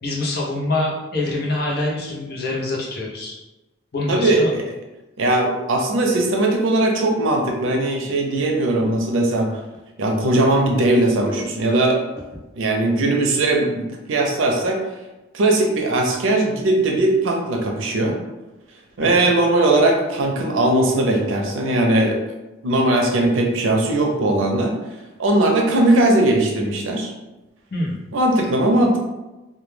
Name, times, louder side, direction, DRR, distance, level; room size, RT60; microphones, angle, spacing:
voice 1, 0.0-3.4 3.9-4.5 19.0-19.3 27.7-28.0, left 2 dB, 50° left, -3 dB, 0.6 m, -25 dB
voice 2, 4.1-4.6 5.2-9.5 10.0-12.0 12.6-14.8 15.3-18.2 19.0-22.2 22.6-24.7 25.2-27.1 28.1-29.0, right 2 dB, 90° right, 2 dB, 0.5 m, -19 dB
2.2 x 2.2 x 3.1 m, 1.1 s
head